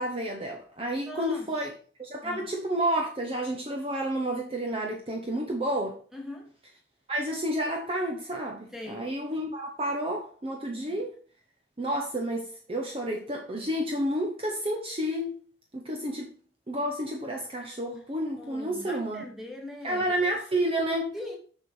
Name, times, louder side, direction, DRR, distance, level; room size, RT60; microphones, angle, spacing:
voice 1, 0.0-6.0 7.1-11.1 11.8-15.4 15.7-16.3 16.7-19.2 19.8-21.1, right 1 dB, 30° right, 0.9 m, -30 dB
voice 2, 1.0-1.5 2.2-2.5 6.1-6.5 8.7-9.1 10.7-11.0 18.4-20.1 21.1-21.4, left 1 dB, ahead, 1.9 m, -41 dB
6.7 x 6.3 x 4.8 m
head